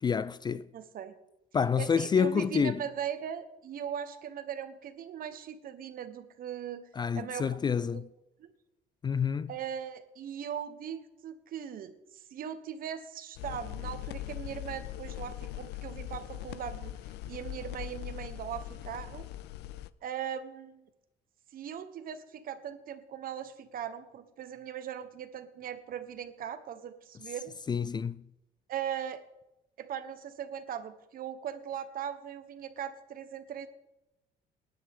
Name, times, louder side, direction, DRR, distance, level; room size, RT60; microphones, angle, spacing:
voice 1, 0.0-0.7 1.5-2.8 7.0-8.1 9.0-9.5 27.7-28.2, left 6 dB, 25° left, 0.4 m, -28 dB
voice 2, 0.7-1.1 1.8-6.8 7.1-7.6 7.9-8.0 8.4-8.5 9.5-16.9 17.3-19.3 20.0-20.8 21.5-27.5 28.7-29.2 29.8-33.7, right 9 dB, 60° right, 1.2 m, -39 dB
sound 1, 13.4-19.9, left 14 dB, 85° left, 0.5 m, -41 dB
19.0 x 10.5 x 3.7 m
cardioid pair, 110°, 17 cm